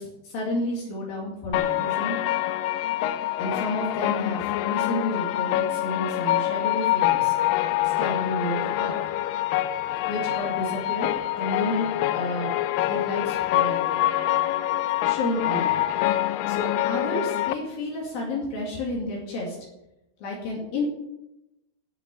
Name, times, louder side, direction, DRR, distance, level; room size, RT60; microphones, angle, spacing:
voice 1, 0.0-2.2 3.4-7.4 7.8-9.0 10.0-11.9 12.1-12.5 12.9-13.9 15.0-15.9 16.5-19.6 20.2-20.8, left 2 dB, 65° left, -3 dB, 4.0 m, -31 dB
sound 1, 1.5-17.5, left 14 dB, 80° left, 2.0 m, -25 dB
11.5 x 7.5 x 8.6 m, 0.91 s
omnidirectional pair, 4.7 m